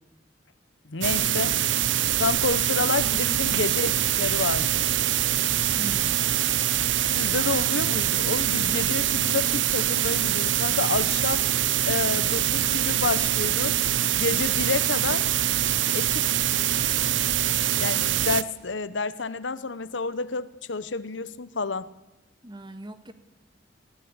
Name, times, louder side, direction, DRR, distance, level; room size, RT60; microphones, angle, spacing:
voice 1, 0.9-1.6 2.2-4.8 7.1-11.4 11.9-13.8 14.2-15.3 15.9-16.3 17.8-21.9, left 4 dB, 70° left, 1.0 m, -29 dB
sound 1, 1.0-18.4, right 11 dB, 70° right, 0.8 m, -24 dB
voice 2, 5.7-6.3 22.4-23.1, right 1 dB, 25° right, 1.7 m, -39 dB
22.5 x 16.5 x 9.7 m
head